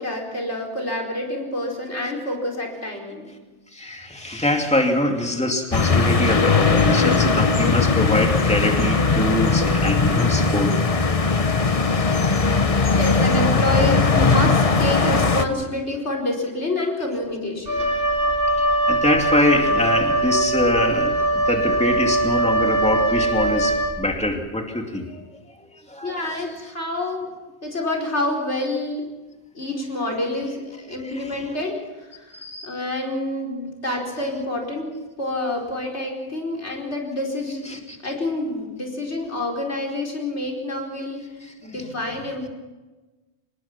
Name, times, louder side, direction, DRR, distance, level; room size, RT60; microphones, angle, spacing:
voice 1, 0.0-3.3 12.9-17.9 26.0-27.3 27.6-29.0 29.5-31.8 32.1-34.9 35.2-41.2 41.6-42.5, left 1 dB, 85° left, 0 dB, 4.9 m, -27 dB
voice 2, 3.7-10.7 18.6-25.2 25.9-26.2 31.0-31.4 32.3-32.7 37.7-37.8 41.7-41.9, left 1 dB, 5° left, 3 dB, 2.5 m, -24 dB
sound 1, 5.7-15.5, left 4 dB, 35° left, 1.1 m, -19 dB
Wind instrument woodwind instrument, 17.6-24.2, right 1 dB, 40° right, 7.6 m, -21 dB
25.5 x 20.0 x 6.0 m, 1.2 s
omnidirectional pair, 1.1 m